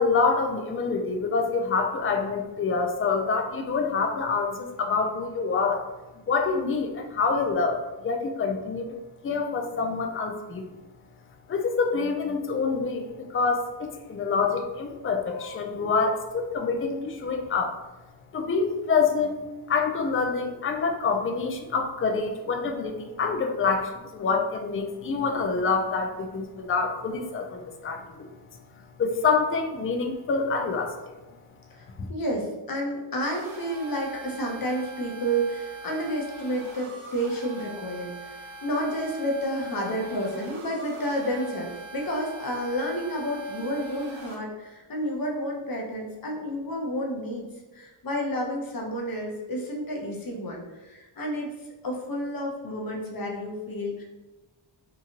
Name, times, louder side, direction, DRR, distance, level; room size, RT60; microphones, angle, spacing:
voice 1, 0.0-5.8 6.3-8.9 9.2-10.6 11.5-17.7 18.3-28.4 29.0-31.0 32.0-32.1, left 4 dB, 30° left, 4 dB, 0.4 m, -26 dB
voice 2, 32.1-47.5 47.7-51.5 51.8-54.0, equal, 45° left, -1 dB, 0.8 m, -30 dB
sound 1, 33.2-44.4, right 2 dB, 75° right, 0.7 m, -43 dB
2.9 x 2.3 x 2.8 m, 1.1 s
cardioid pair, 45°, 48 cm